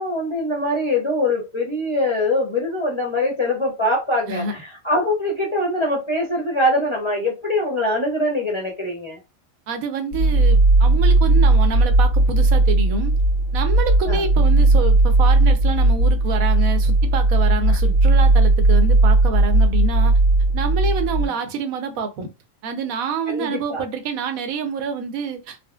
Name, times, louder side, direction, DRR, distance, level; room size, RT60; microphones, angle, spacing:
voice 1, 0.0-9.2 14.1-14.2 17.7-17.8 23.3-23.8, left 1 dB, 35° left, 0.4 m, -23 dB
voice 2, 9.7-13.1 13.5-20.1 20.5-22.3 22.6-25.7, right 5 dB, 85° right, 1.1 m, -27 dB
sound 1, 10.1-21.3, right 2 dB, 65° right, 1.8 m, -16 dB
4.0 x 2.1 x 2.2 m
omnidirectional pair, 1.4 m